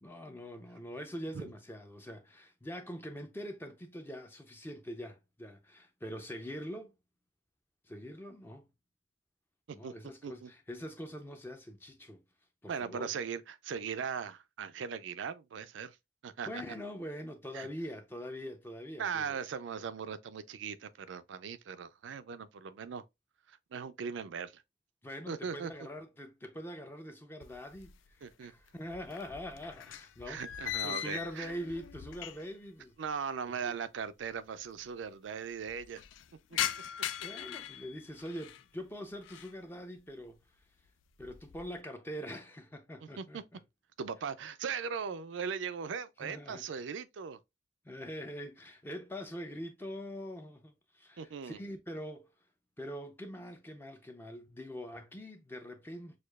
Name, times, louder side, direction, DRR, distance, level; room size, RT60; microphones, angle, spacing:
voice 1, 0.0-6.9 7.9-8.7 9.7-12.2 12.6-13.1 16.5-19.4 25.0-30.4 30.8-33.7 37.2-40.4 41.2-43.6 46.2-46.7 47.8-52.3 52.8-56.2, equal, 10° left, 0.4 m, -44 dB
voice 2, 12.7-16.0 16.2-16.6 17.5-17.7 19.0-23.0 23.5-24.6 25.3-25.7 28.2-28.5 30.3-31.5 33.0-36.0 36.5-36.6 43.0-43.4 44.0-47.4 51.2-51.6, right 6 dB, 75° right, 0.4 m, -39 dB
sound 1, 27.4-28.3 28.6-32.7 32.9-33.0 33.9-34.0 34.2-34.3 34.6-35.0 35.4-38.7 39.1-39.6 40.0-40.4 40.8-41.7, left 11 dB, 85° left, 0.3 m, -40 dB
6.4 x 2.3 x 2.3 m
head